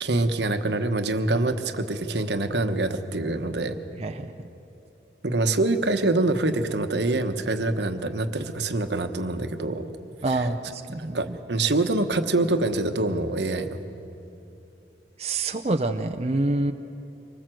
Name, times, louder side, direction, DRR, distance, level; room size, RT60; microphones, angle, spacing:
voice 1, 0.0-3.8 5.2-9.9 10.3-10.5 11.1-13.7, right 2 dB, 80° right, 7 dB, 1.2 m, -25 dB
voice 2, 4.0-4.3 10.2-11.4 15.2-16.7, right 2 dB, 35° right, 6 dB, 0.7 m, -27 dB
25.0 x 20.0 x 7.7 m, 2.8 s
head